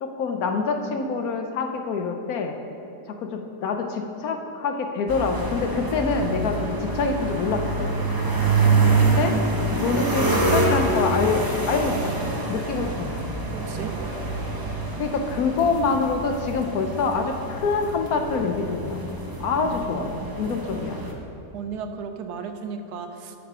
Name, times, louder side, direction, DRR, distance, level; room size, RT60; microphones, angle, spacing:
voice 1, 0.0-2.6 3.1-7.9 9.0-9.4 9.8-13.3 15.0-19.0 19.4-20.1 20.4-21.0, left 4 dB, 70° left, 4 dB, 1.2 m, -26 dB
sound 1, 5.1-21.1, right 3 dB, 20° right, 0.5 m, -26 dB
voice 2, 13.5-14.0 21.5-23.4, right 6 dB, 80° right, 7 dB, 1.2 m, -34 dB
8.5 x 6.7 x 5.5 m, 2.8 s
omnidirectional pair, 1.7 m